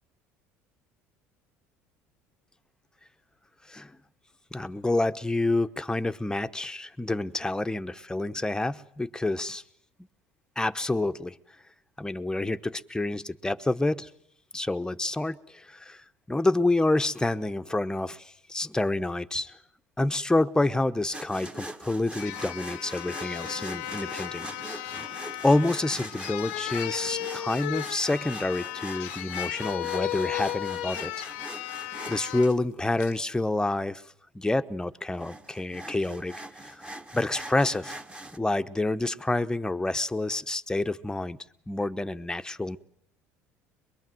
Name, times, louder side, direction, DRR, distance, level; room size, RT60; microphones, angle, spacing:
voice 1, 4.5-9.6 10.6-11.3 12.0-14.1 14.5-19.6 20.0-24.5 24.8-24.9 25.4-31.1 32.1-34.0 34.3-36.3 36.7-36.8 37.1-38.0 38.3-41.4 41.7-42.8, left 2 dB, 10° left, 11 dB, 1.0 m, -28 dB
sound 1, 21.1-32.6 35.1-38.4, right 1 dB, 15° right, 1.5 m, -42 dB
sound 2, 21.7-21.8 22.2-32.5 33.0-33.2, left 14 dB, 80° left, 0.9 m, -35 dB
23.0 x 22.5 x 7.8 m, 0.70 s
hypercardioid pair, 75°, 7 cm